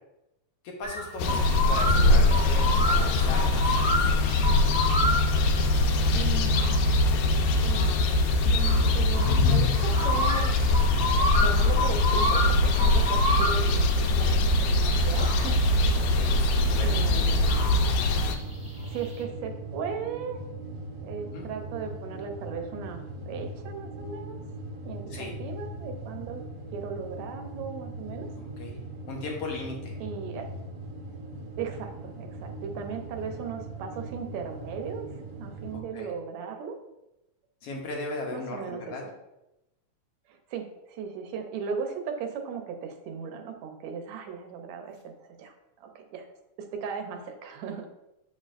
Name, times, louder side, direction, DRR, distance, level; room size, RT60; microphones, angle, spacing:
voice 1, 0.6-4.7 13.3-13.4 15.9-17.0 21.3-21.5 25.1-25.4 28.6-30.0 35.7-36.1 37.6-39.0, left 3 dB, 65° left, 0 dB, 1.7 m, -38 dB
sound 1, 0.8-19.2, equal, 5° right, 0.8 m, -31 dB
sound 2, 1.2-18.4, left 2 dB, 80° left, 2.0 m, -23 dB
voice 2, 6.1-6.8 7.6-8.0 8.5-10.5 11.2-16.1 16.8-17.5 18.8-20.4 21.0-24.4 24.8-26.4 26.7-28.3 30.0-30.5 31.6-36.8 38.3-39.1 40.3-46.3 46.6-47.9, right 6 dB, 75° right, 4 dB, 2.0 m, -37 dB
sound 3, 18.3-35.8, right 1 dB, 60° right, 1.0 m, -40 dB
7.9 x 6.4 x 2.5 m, 0.92 s
omnidirectional pair, 3.3 m